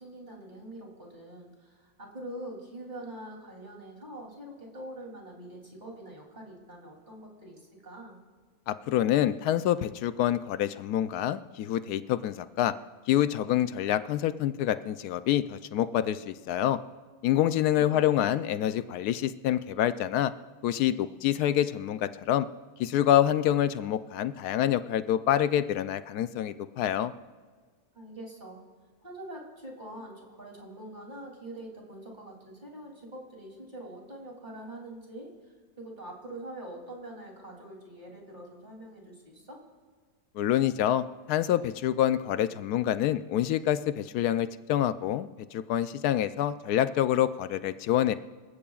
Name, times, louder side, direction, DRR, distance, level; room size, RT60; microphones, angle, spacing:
voice 1, 0.0-8.2 17.7-18.0 27.9-28.6 29.0-39.6, right 1 dB, 30° right, -1 dB, 3.1 m, -44 dB
voice 2, 8.7-12.7 13.1-16.8 17.2-20.3 20.6-22.5 22.8-27.1 40.4-48.1, left 11 dB, 85° left, 12 dB, 1.1 m, -27 dB
25.5 x 15.5 x 2.4 m, 1.5 s
omnidirectional pair, 1.6 m